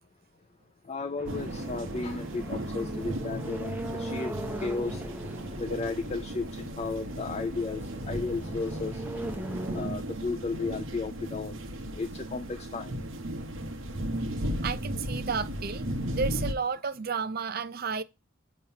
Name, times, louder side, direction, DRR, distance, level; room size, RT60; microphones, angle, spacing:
voice 1, 0.9-4.3 4.6-5.0 5.6-9.0 9.7-11.6 12.0-12.9, left 4 dB, 30° left, 0.4 m, -34 dB
sound 1, 1.2-9.9, right 1 dB, 10° right, 0.8 m, -40 dB
sound 2, 1.2-16.5, right 1 dB, 70° right, 1.0 m, -36 dB
voice 2, 14.6-15.9 16.1-18.0, right 5 dB, 45° right, 0.5 m, -32 dB
7.2 x 3.0 x 5.7 m
head